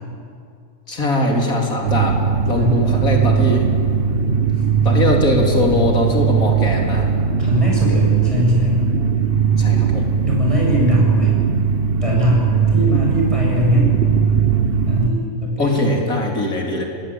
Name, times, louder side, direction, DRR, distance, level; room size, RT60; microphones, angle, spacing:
voice 1, 0.9-2.2 2.5-3.7 4.8-7.1 9.6-10.0 15.6-16.8, left 1 dB, 80° left, 0 dB, 4.1 m, -20 dB
sound 1, 1.9-15.1, right 6 dB, 45° right, 1.3 m, -18 dB
voice 2, 2.5-3.2 7.4-8.8 10.2-11.4 12.0-12.4 12.7-13.9 14.9-16.1, left 1 dB, 20° right, -3 dB, 8.0 m, -20 dB
28.0 x 20.0 x 8.8 m, 2.4 s
omnidirectional pair, 1.5 m